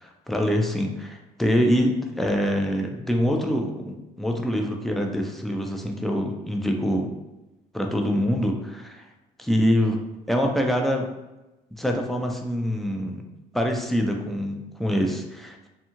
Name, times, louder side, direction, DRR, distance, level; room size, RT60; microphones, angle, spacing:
voice 1, 0.0-7.1 7.7-9.1 9.4-10.0 10.3-11.1 11.7-13.2 13.5-15.7, equal, ahead, 2 dB, 0.4 m, -25 dB
2.7 x 2.3 x 2.8 m, 1.0 s
cardioid pair, 110°, 17 cm